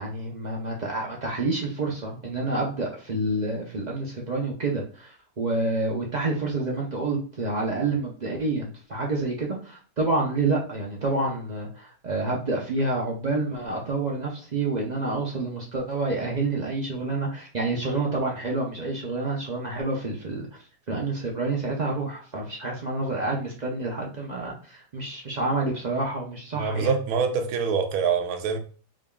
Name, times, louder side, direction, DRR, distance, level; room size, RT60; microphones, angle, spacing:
voice 1, 0.0-20.5 20.9-27.0, right 2 dB, 55° right, 0.4 m, -28 dB
voice 2, 26.6-28.6, right 6 dB, 75° right, 1.1 m, -25 dB
3.8 x 3.5 x 2.2 m
omnidirectional pair, 1.7 m